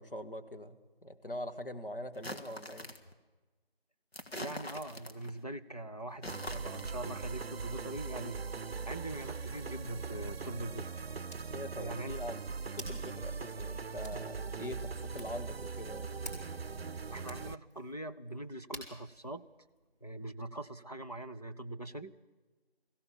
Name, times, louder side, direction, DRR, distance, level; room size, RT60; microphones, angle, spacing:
voice 1, 0.0-2.9 11.5-12.4 12.8-16.1, left 1 dB, 60° left, 6 dB, 1.8 m, -43 dB
sound 1, 2.1-3.1 4.1-5.4 6.1-7.0, left 1 dB, 80° left, 2.2 m, -44 dB
voice 2, 4.3-10.9 11.8-12.1 17.1-19.4 20.0-22.1, right 1 dB, 40° left, 6 dB, 0.7 m, -42 dB
sound 2, 6.3-17.6, right 5 dB, 75° right, 0.5 m, -40 dB
Hands, 9.7-20.5, right 1 dB, 15° left, 4.2 m, -53 dB
21.5 x 16.0 x 7.4 m, 1.3 s
figure-of-eight pair, 175°, 30 cm